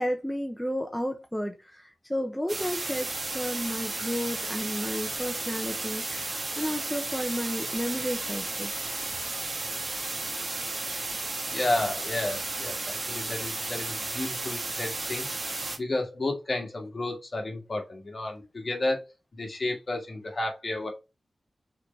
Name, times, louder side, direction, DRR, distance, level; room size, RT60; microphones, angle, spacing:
voice 1, 0.0-8.7, equal, 5° left, 0.8 m, -32 dB
sound 1, 2.5-15.8, right 2 dB, 40° right, 1.5 m, -33 dB
voice 2, 11.5-15.3 15.8-19.0 19.3-20.9, left 2 dB, 45° left, 1.9 m, -32 dB
5.0 x 4.3 x 4.4 m
wide cardioid pair, 130°, 0 cm